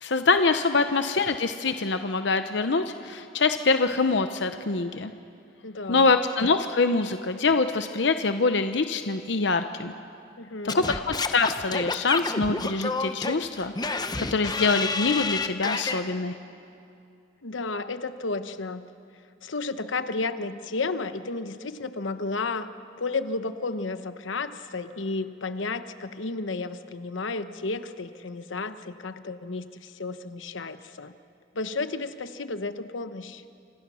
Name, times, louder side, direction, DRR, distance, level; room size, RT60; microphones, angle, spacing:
voice 1, 0.0-5.1 5.9-9.9 10.7-16.3, left 4 dB, 65° left, 8 dB, 0.8 m, -25 dB
voice 2, 5.6-6.2 10.4-10.9 17.4-18.9 19.4-22.7 23.0-31.1 31.5-33.4, left 3 dB, 90° left, 11 dB, 1.0 m, -32 dB
Singing / Scratching (performance technique), 10.7-16.0, left 4 dB, 20° left, 0.8 m, -29 dB
27.0 x 26.5 x 6.3 m, 2.5 s
head